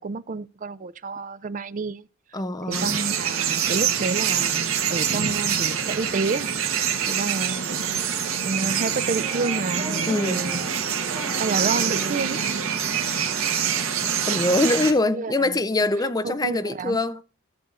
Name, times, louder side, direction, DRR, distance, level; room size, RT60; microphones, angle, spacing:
voice 1, 0.0-2.1 2.7-7.7 8.1-10.7 11.4-12.4 15.1-15.9 16.2-17.0, right 3 dB, 40° right, 0.4 m, -30 dB
voice 2, 2.3-2.9 10.1-10.5 14.3-17.2, left 2 dB, 20° left, 0.5 m, -23 dB
sound 1, 2.7-14.9, right 8 dB, 75° right, 1.3 m, -25 dB
Child speech kid speaking, 7.8-8.6 9.1-12.2, right 1 dB, ahead, 3.4 m, -42 dB
14.5 x 7.0 x 2.5 m
head